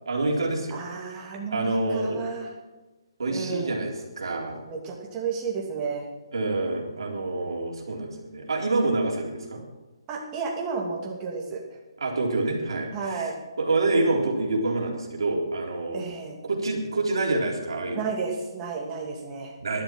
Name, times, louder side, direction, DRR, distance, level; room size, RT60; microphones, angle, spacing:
voice 1, 0.1-0.8 1.5-2.2 3.2-4.6 6.3-9.6 12.0-13.3 13.6-16.0 16.4-18.1 19.6-19.8, right 2 dB, 70° right, -1 dB, 3.7 m, -27 dB
voice 2, 0.7-2.5 3.3-3.7 4.6-6.1 10.1-11.6 12.9-13.4 15.9-16.4 17.9-19.5, right 5 dB, 20° right, -1 dB, 2.6 m, -32 dB
12.0 x 11.5 x 6.1 m, 1.1 s
hypercardioid pair, 155°, 3 cm